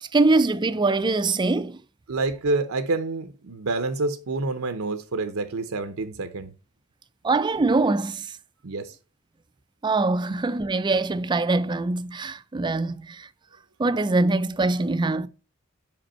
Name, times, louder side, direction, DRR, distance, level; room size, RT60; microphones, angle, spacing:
voice 1, 0.0-1.8 7.2-8.3 9.8-13.3 13.8-15.3, right 3 dB, 20° right, 0.4 m, -23 dB
voice 2, 2.1-6.5 8.6-9.0, right 3 dB, 70° right, 0.7 m, -28 dB
5.3 x 5.1 x 4.2 m
head